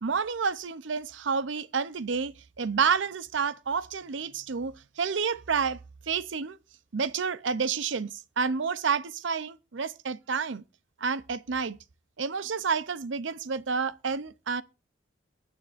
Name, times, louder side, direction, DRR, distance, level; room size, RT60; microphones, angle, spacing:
voice 1, 0.0-5.8 6.1-6.6 6.9-8.1 8.4-10.6 11.0-11.8 12.2-14.6, right 5 dB, 75° right, 0.6 m, -29 dB
22.5 x 9.2 x 2.5 m
head